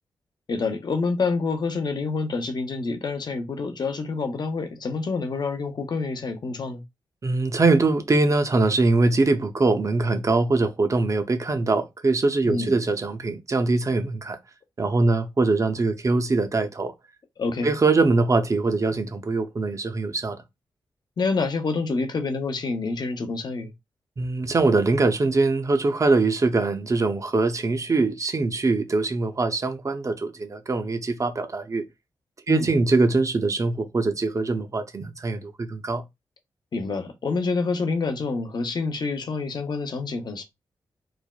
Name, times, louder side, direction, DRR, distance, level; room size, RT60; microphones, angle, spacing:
voice 1, 0.5-6.8 12.4-12.8 17.4-17.7 21.2-23.7 32.5-32.7 36.7-40.4, left 4 dB, 50° left, 0.6 m, -27 dB
voice 2, 7.2-14.4 14.8-16.9 17.6-20.4 24.2-31.8 32.5-36.0, right 3 dB, 35° right, 0.6 m, -22 dB
3.2 x 2.1 x 2.2 m
cardioid pair, 50°, 9 cm